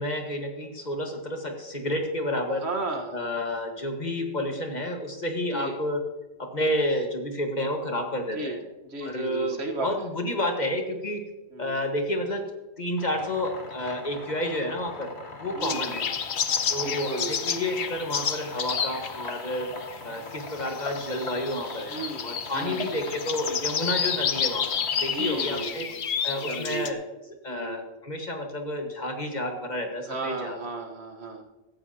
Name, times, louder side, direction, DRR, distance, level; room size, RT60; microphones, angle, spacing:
voice 1, 0.0-2.7 3.1-6.0 6.4-8.6 9.0-11.2 11.6-12.4 12.8-15.1 15.4-16.0 16.7-19.7 20.0-24.7 25.0-25.9 26.2-27.0 27.4-30.6, left 1 dB, 45° left, 3 dB, 1.8 m, -30 dB
voice 2, 2.6-3.2 5.5-5.8 8.3-8.6 8.9-10.1 11.5-11.7 15.5-16.1 16.8-17.3 21.9-22.3 22.5-22.9 25.1-26.0 26.4-26.9 27.5-27.9 30.1-31.4, right 2 dB, 85° right, 4 dB, 1.7 m, -34 dB
sound 1, 13.0-25.6, left 3 dB, 85° left, 2.0 m, -41 dB
sound 2, 15.6-26.9, left 7 dB, 65° left, 1.0 m, -30 dB
16.0 x 14.0 x 2.9 m, 1.1 s
omnidirectional pair, 1.1 m